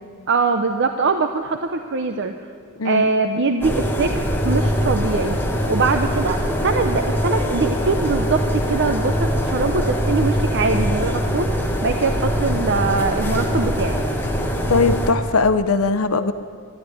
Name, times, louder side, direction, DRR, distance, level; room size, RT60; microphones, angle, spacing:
voice 1, 0.3-2.3 2.8-5.4 5.7-14.0, right 4 dB, 55° right, 6 dB, 0.6 m, -22 dB
voice 2, 2.8-3.1 14.7-16.3, left 4 dB, 70° left, 10 dB, 0.7 m, -19 dB
sound 1, 3.6-15.1, equal, 10° left, 1.4 m, -22 dB
12.5 x 11.5 x 9.2 m, 2.1 s
head